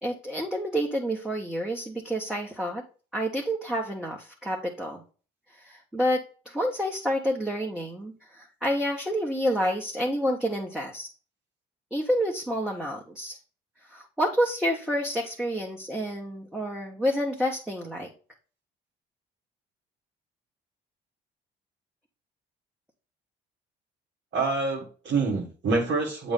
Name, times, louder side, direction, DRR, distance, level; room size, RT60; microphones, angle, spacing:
voice 1, 0.0-2.8 3.1-5.0 5.5-11.1 11.9-13.4 13.9-18.1, equal, 5° right, -1 dB, 1.4 m, -29 dB
voice 2, 24.3-26.3, right 3 dB, 60° right, -1 dB, 2.1 m, -26 dB
7.8 x 3.3 x 5.5 m, 0.37 s
hypercardioid pair, 55°, 21 cm